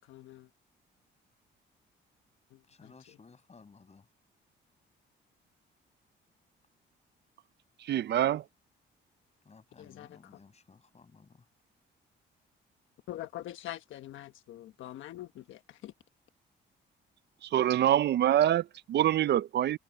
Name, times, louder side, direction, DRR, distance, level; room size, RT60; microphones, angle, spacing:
voice 1, 0.1-0.5 2.5-2.6 9.8-10.2 13.1-15.9, left 13 dB, 80° left, 1.2 m, -44 dB
voice 2, 2.7-4.1 9.4-11.5, left 4 dB, 35° left, 6.1 m, -57 dB
voice 3, 7.8-8.4 17.4-19.8, right 12 dB, 60° right, 0.5 m, -25 dB
cardioid pair, 90°, 20 cm